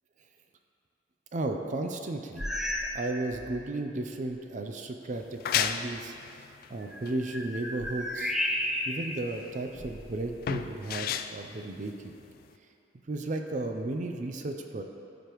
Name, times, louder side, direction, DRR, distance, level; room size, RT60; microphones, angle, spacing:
voice 1, 1.3-2.5 2.9-6.1 6.7-8.4 8.9-12.2 13.1-14.8, right 2 dB, 45° right, 5 dB, 0.5 m, -34 dB
sound 1, 2.4-3.0 3.3-3.6 4.3-4.4 6.8-9.1 9.7-10.7, left 1 dB, ahead, 0.7 m, -33 dB
sound 2, 5.1-12.6, left 8 dB, 55° left, 0.3 m, -34 dB
14.0 x 5.0 x 3.0 m, 2.7 s
head